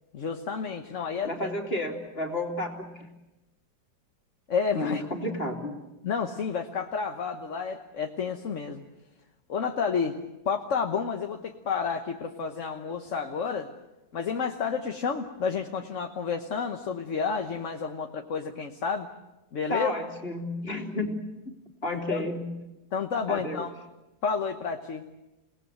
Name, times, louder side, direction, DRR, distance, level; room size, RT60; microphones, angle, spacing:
voice 1, 0.1-1.3 4.5-5.0 6.0-8.8 9.5-10.2 10.4-13.7 14.1-19.1 19.5-19.9 21.9-22.2 22.9-23.7 24.2-25.1, left 6 dB, 45° left, 4 dB, 1.3 m, -30 dB
voice 2, 1.2-3.1 4.7-5.8 19.7-21.2 21.8-22.5 23.3-23.7, left 1 dB, 30° left, 2 dB, 3.1 m, -31 dB
28.5 x 19.0 x 7.9 m, 0.99 s
omnidirectional pair, 2.0 m